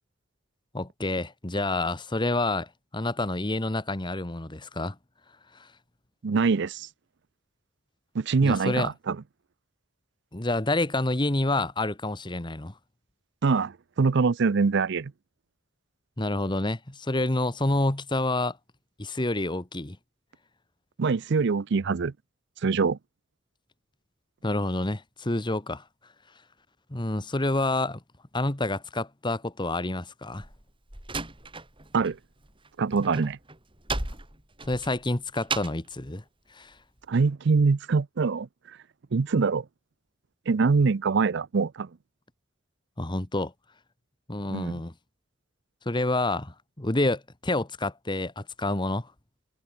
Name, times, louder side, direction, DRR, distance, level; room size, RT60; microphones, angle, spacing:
voice 1, 0.7-4.9 5.6-5.7 8.4-8.9 10.3-12.7 16.2-18.6 19.0-20.0 24.4-25.8 26.9-28.0 28.3-30.5 34.7-36.2 36.5-36.7 43.0-43.5 44.3-44.9 45.8-49.1, left 2 dB, 25° left, 1.4 m, -28 dB
voice 2, 6.2-6.9 8.1-9.2 13.4-15.1 21.0-22.1 22.6-23.0 31.9-32.2 32.8-33.4 37.1-38.5 39.1-39.7 40.5-41.9 44.5-44.8, right 4 dB, 60° right, 0.5 m, -24 dB
Slam, 30.3-32.2 32.4-35.9, right 3 dB, 25° right, 4.5 m, -35 dB
head